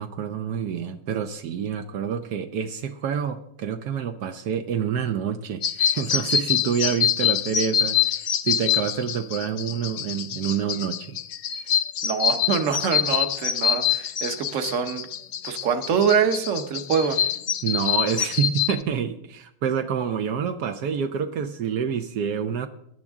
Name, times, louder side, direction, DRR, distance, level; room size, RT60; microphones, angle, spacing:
voice 1, 0.0-11.2 11.5-11.7 14.5-14.7 17.6-22.7, right 7 dB, 80° right, 6 dB, 1.3 m, -27 dB
sound 1, 5.6-18.8, left 9 dB, 65° left, 0.9 m, -25 dB
voice 2, 12.0-15.1 15.4-17.2, right 6 dB, 55° right, 7 dB, 1.4 m, -24 dB
20.5 x 10.0 x 3.6 m, 0.73 s
omnidirectional pair, 1.7 m